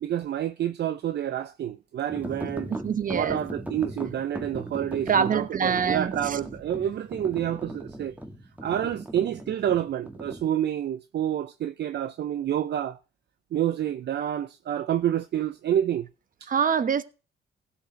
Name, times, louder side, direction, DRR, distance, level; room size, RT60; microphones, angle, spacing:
voice 1, 0.0-2.7 3.1-8.1 8.6-13.0 13.5-16.1 16.4-16.5, right 10 dB, 60° right, 0.7 m, -28 dB
sound 1, 2.1-10.5, right 1 dB, 10° right, 1.7 m, -38 dB
voice 2, 2.7-3.4 5.1-6.4 16.5-17.0, right 7 dB, 45° right, 1.1 m, -25 dB
16.0 x 7.0 x 5.2 m
cardioid pair, 90°, 20 cm